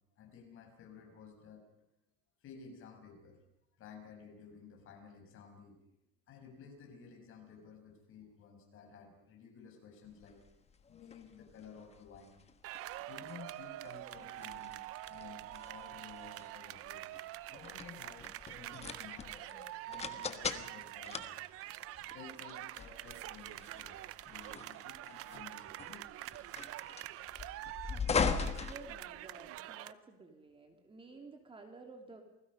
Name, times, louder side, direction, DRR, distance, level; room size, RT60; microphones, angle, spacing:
voice 1, 0.2-1.6 2.4-3.4 3.8-5.8 6.3-10.4 10.9-12.4 13.1-17.1 17.5-19.4 19.9-21.5 22.0-26.1 27.4-27.5 31.0-31.1, left 6 dB, 45° left, 3 dB, 6.1 m, -54 dB
sound 1, 10.2-29.6, left 5 dB, 20° left, 1.3 m, -41 dB
sound 2, 12.6-29.9, right 16 dB, 50° right, 0.7 m, -46 dB
voice 2, 27.8-32.2, right 3 dB, 20° right, 4 dB, 2.8 m, -53 dB
29.0 x 20.0 x 5.4 m, 0.83 s
cardioid pair, 150°, 29 cm